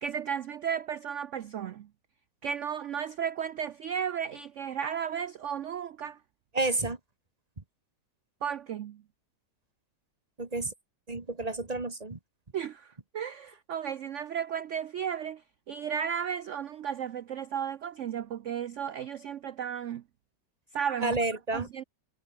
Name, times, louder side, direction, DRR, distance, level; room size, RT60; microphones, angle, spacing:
voice 1, 0.0-1.9 2.4-6.2 8.4-9.0 12.5-15.4 15.7-20.0 20.7-21.2 21.5-21.8, right 8 dB, 75° right, 0.6 m, -34 dB
voice 2, 6.5-7.0 10.4-10.7 11.1-12.2 21.0-21.7, right 2 dB, 20° right, 1.7 m, -30 dB
omnidirectional pair, 2.0 m